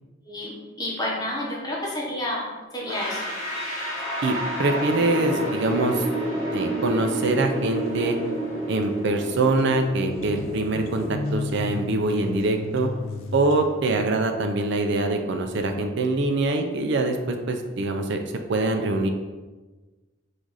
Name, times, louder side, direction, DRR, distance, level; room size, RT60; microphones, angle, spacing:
voice 1, 0.2-2.4 2.7-3.2, left 1 dB, 20° left, -4 dB, 0.8 m, -30 dB
sound 1, 2.8-13.7, right 1 dB, 35° right, 1.4 m, -31 dB
voice 2, 4.2-6.0 6.5-8.2 8.7-12.9 13.3-19.1, right 2 dB, 65° right, 5 dB, 0.5 m, -24 dB
sound 2, 8.8-8.9 9.2-13.9, left 3 dB, 85° left, 0.4 m, -34 dB
4.0 x 2.5 x 4.6 m, 1.3 s
head